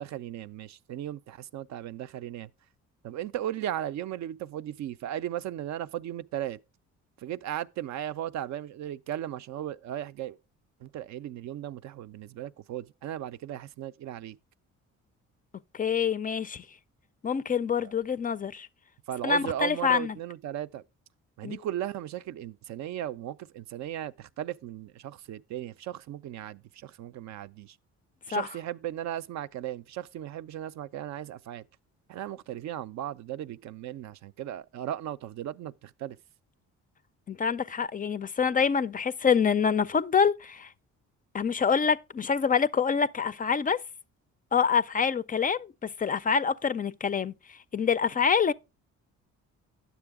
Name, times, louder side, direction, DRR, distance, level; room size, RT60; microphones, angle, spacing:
voice 1, 0.0-2.5 3.0-6.6 7.2-10.4 10.8-14.4 17.8-17.9 19.1-20.8 21.4-27.8 28.3-31.6 32.1-36.2, right 11 dB, 65° right, 0.4 m, -36 dB
voice 2, 15.7-16.6 17.2-18.7 19.2-20.1 21.4-21.6 28.3-28.5 37.3-40.7 41.3-43.8 44.5-47.3 47.7-48.5, left 6 dB, 30° left, 0.3 m, -26 dB
9.7 x 7.0 x 3.4 m
cardioid pair, 90°, 30 cm